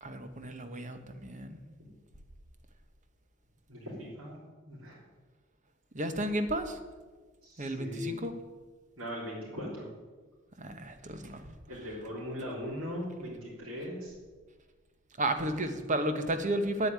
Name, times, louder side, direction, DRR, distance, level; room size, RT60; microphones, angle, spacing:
voice 1, 0.0-1.6 5.9-6.8 7.6-8.3 10.6-11.4 15.2-16.9, right 1 dB, 35° right, 8 dB, 1.2 m, -33 dB
voice 2, 3.7-4.4 4.7-5.0 7.4-8.2 9.0-9.9 11.7-14.1, left 1 dB, 75° right, -7 dB, 3.8 m, -39 dB
9.4 x 8.2 x 9.5 m, 1.4 s
head